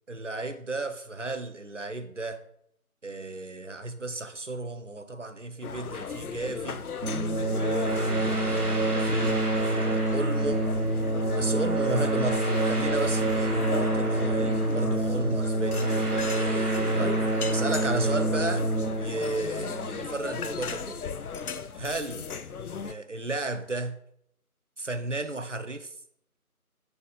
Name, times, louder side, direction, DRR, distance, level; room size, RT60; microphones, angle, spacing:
voice 1, 0.1-2.4 3.0-6.8 7.6-10.7 11.4-16.6 17.0-17.2 17.5-18.7 19.0-21.0 21.8-22.3 22.8-24.0 24.8-25.9, right 2 dB, 55° right, 10 dB, 0.5 m, -34 dB
sound 1, 5.6-22.9, left 6 dB, 75° left, 0.5 m, -37 dB
sound 2, 7.0-20.4, right 2 dB, 80° right, 1.6 m, -27 dB
6.9 x 4.0 x 3.7 m, 0.73 s
figure-of-eight pair, 170°, 45 cm